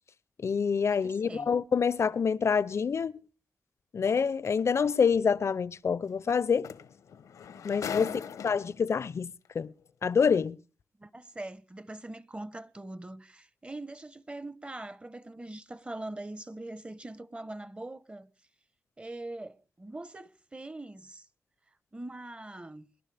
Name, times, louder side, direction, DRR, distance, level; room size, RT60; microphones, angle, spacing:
voice 1, 0.4-3.2 3.9-6.7 7.6-9.7 10.0-10.6, left 6 dB, 60° left, 0.6 m, -27 dB
voice 2, 0.9-1.5 7.9-8.2 11.0-18.3 19.0-21.3 21.9-22.9, right 2 dB, 20° right, 1.0 m, -42 dB
sound 1, 4.5-4.6 6.3-6.4 6.6-8.9 9.8-9.9, left 7 dB, 90° left, 0.9 m, -39 dB
26.5 x 11.5 x 3.4 m
cardioid pair, 60°, 5 cm